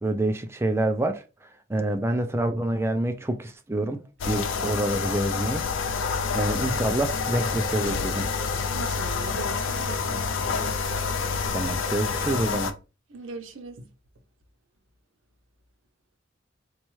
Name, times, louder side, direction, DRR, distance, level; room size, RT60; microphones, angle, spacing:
voice 1, 0.0-1.2 1.7-4.0 4.3-5.6 6.3-8.3 10.6-10.7 11.5-12.7, right 1 dB, 15° right, 0.4 m, -27 dB
sound 1, 4.2-12.7, left 5 dB, 80° left, 0.5 m, -28 dB
voice 2, 8.7-10.3 13.1-13.9, right 3 dB, 90° right, 0.7 m, -39 dB
4.2 x 2.3 x 3.1 m
head